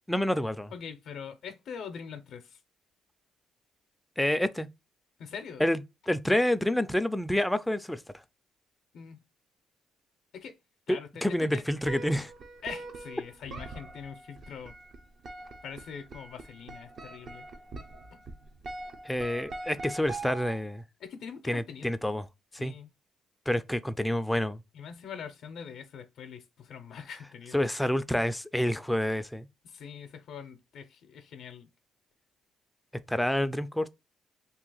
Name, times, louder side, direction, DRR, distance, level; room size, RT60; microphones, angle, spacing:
voice 1, 0.1-0.7 4.2-4.7 5.6-8.0 10.9-12.3 19.0-20.8 21.4-22.3 22.5-22.8 23.5-24.6 27.5-29.5 33.1-33.9, left 1 dB, 5° left, 0.4 m, -28 dB
voice 2, 0.7-2.6 5.2-5.6 8.9-9.2 10.3-10.6 10.9-11.6 12.6-14.7 15.6-17.4 21.0-21.9 22.6-22.9 24.7-27.6 29.6-31.7, left 7 dB, 70° left, 0.5 m, -43 dB
sound 1, 11.8-20.8, right 3 dB, 55° right, 0.7 m, -43 dB
2.8 x 2.7 x 3.8 m
cardioid pair, 90°, 0 cm